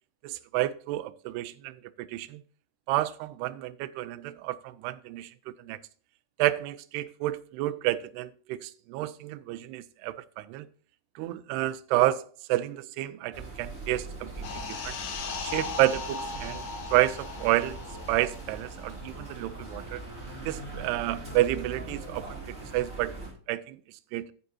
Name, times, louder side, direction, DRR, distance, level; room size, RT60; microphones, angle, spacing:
voice 1, 0.2-2.4 2.9-5.8 6.4-10.7 11.2-14.3 14.8-15.0 15.4-16.6 16.9-17.8 18.1-20.0 20.5-24.3, right 16 dB, 90° right, 2.6 m, -30 dB
sound 1, 13.3-23.3, right 2 dB, 15° right, 4.8 m, -41 dB
sound 2, 14.4-19.5 19.8-20.0, left 4 dB, 60° left, 1.9 m, -38 dB
11.5 x 9.2 x 2.8 m
omnidirectional pair, 4.6 m